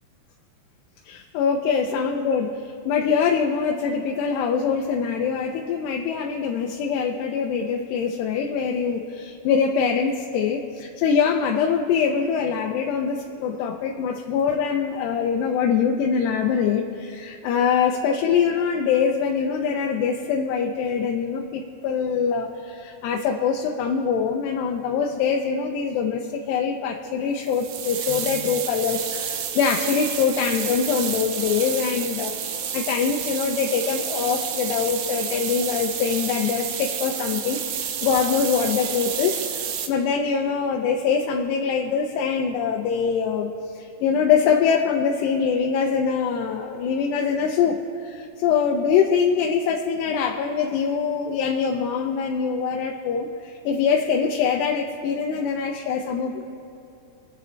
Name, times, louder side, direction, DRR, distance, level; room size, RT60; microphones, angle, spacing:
voice 1, 1.1-2.6 2.9-32.3 32.7-37.6 38.0-39.6 39.9-43.5 44.0-47.8 48.0-53.3 53.7-56.4, left 6 dB, 90° left, 1 dB, 2.9 m, -23 dB
sound 1, 27.4-39.9, right 8 dB, 90° right, 1.7 m, -30 dB
25.5 x 9.4 x 3.2 m, 2.8 s
omnidirectional pair, 4.7 m